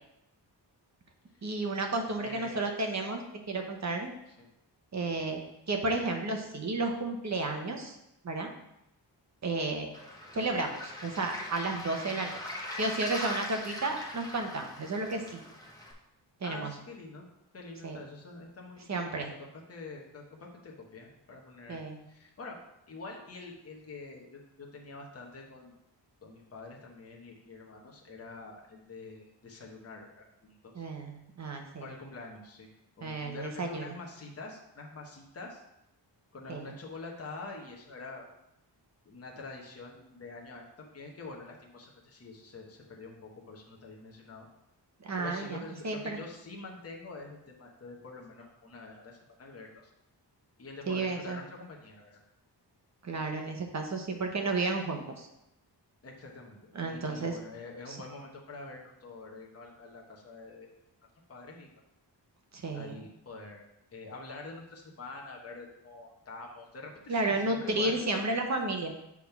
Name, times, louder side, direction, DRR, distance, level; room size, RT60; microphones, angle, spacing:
voice 1, 1.4-3.2 3.5-4.1 4.9-5.4 5.7-8.0 8.2-8.5 9.4-9.9 10.3-12.4 12.7-15.4 16.4-16.7 17.8-18.0 18.9-19.3 21.7-22.1 30.7-31.9 33.0-33.9 36.5-36.7 45.0-46.2 50.9-51.4 53.0-55.3 56.7-57.4 57.9-58.0 62.6-63.0 67.1-68.9, right 2 dB, 40° right, 3 dB, 0.9 m, -32 dB
voice 2, 2.2-2.6 4.3-4.5 5.1-5.4 16.4-17.3 17.5-21.8 22.1-22.6 22.9-25.7 26.2-30.8 31.8-32.7 33.0-35.6 36.3-38.3 39.0-44.5 45.2-49.9 50.6-52.2 56.0-60.7 61.3-61.8 62.7-63.6 63.9-68.0, left 3 dB, 35° left, -1 dB, 1.1 m, -46 dB
Waves surf, 9.9-15.9, left 1 dB, 10° left, 0.9 m, -41 dB
6.2 x 3.6 x 5.8 m, 0.85 s
wide cardioid pair, 160°, 43 cm